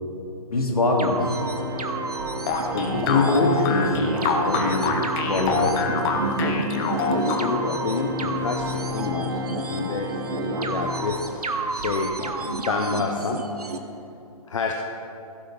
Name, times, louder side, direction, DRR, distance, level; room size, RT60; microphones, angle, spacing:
voice 1, 0.5-1.2 2.7-4.9 5.2-6.1, left 2 dB, 70° left, 0 dB, 2.4 m, -23 dB
sound 1, 1.0-13.8, right 2 dB, 75° right, 1.0 m, -31 dB
Organ, 1.1-11.8, equal, 20° right, 0.8 m, -33 dB
sound 2, 2.5-7.8, left 5 dB, 15° left, 0.7 m, -26 dB
voice 2, 2.7-3.4 6.7-13.5 14.5-14.7, left 4 dB, 55° left, 2 dB, 0.9 m, -29 dB
15.5 x 6.6 x 5.3 m, 2.7 s
figure-of-eight pair, 135°, 20 cm